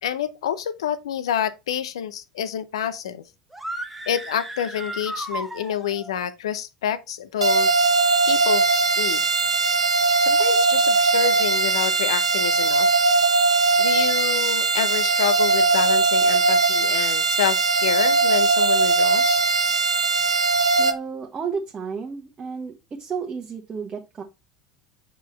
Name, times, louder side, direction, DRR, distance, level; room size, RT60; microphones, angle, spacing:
voice 1, 0.0-3.2 4.1-7.7 8.3-9.2 10.2-12.9 13.8-19.4, left 10 dB, 70° left, 0.6 m, -28 dB
sound 1, 3.5-6.1, right 1 dB, 5° right, 1.3 m, -34 dB
sound 2, 7.4-20.9, right 3 dB, 85° right, 0.5 m, -20 dB
voice 2, 20.8-22.7 23.0-24.2, right 6 dB, 30° right, 1.1 m, -32 dB
7.4 x 4.6 x 3.2 m
figure-of-eight pair, 70°, 3 cm